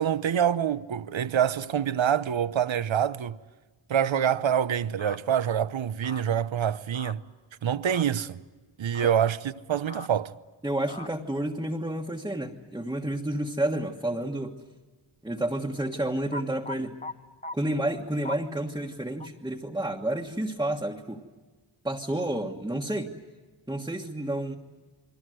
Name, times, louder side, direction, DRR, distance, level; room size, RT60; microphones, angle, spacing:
voice 1, 0.0-3.4 3.9-7.2 7.6-8.4 8.8-10.4, right 9 dB, 75° right, 0.9 m, -26 dB
sound 1, 5.0-5.2 6.0-6.2 6.9-7.1 7.8-8.0 8.9-9.1 9.9-10.1 10.9-11.1 16.3-17.1 17.4-17.5 18.2-18.4 19.2-19.3, left 2 dB, 15° left, 1.0 m, -38 dB
voice 2, 10.6-14.6 15.2-17.0 17.5-21.2 21.8-23.1 23.7-24.6, right 1 dB, 10° right, 1.4 m, -30 dB
29.0 x 22.5 x 7.8 m
wide cardioid pair, 125°, 47 cm